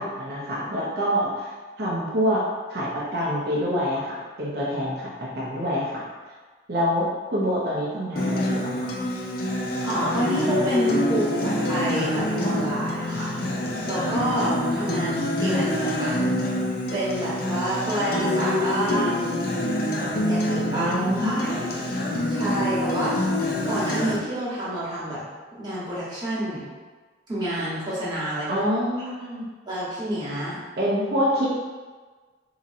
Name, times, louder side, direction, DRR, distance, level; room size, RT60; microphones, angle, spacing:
voice 1, 0.0-1.5 1.8-2.4 2.7-6.1 6.7-8.9 20.7-21.8 28.5-29.5 30.8-31.5, equal, 55° right, -6 dB, 0.7 m, -26 dB
Acoustic guitar, 8.2-24.2, left 1 dB, 50° left, 0.5 m, -26 dB
voice 2, 9.8-13.4 13.8-16.3 16.9-19.3 20.3-20.9 21.2-21.5 22.3-23.2 23.6-25.2 25.5-26.6 27.3-28.7 29.0-29.1 29.7-30.6, right 1 dB, 20° right, -10 dB, 1.1 m, -28 dB
4.0 x 2.9 x 2.5 m, 1.4 s
head